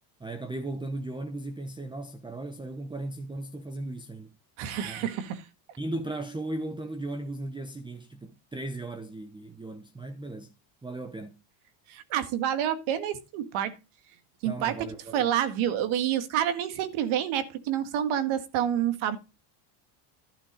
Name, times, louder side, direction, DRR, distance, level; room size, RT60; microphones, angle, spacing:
voice 1, 0.2-4.3 4.8-5.1 5.8-10.5 10.8-11.4 14.4-15.3, right 2 dB, 10° right, 0.8 m, -36 dB
voice 2, 4.6-5.5 11.9-13.8 14.4-19.2, right 10 dB, 70° right, 1.9 m, -28 dB
11.5 x 5.9 x 5.1 m
cardioid pair, 120°, 50 cm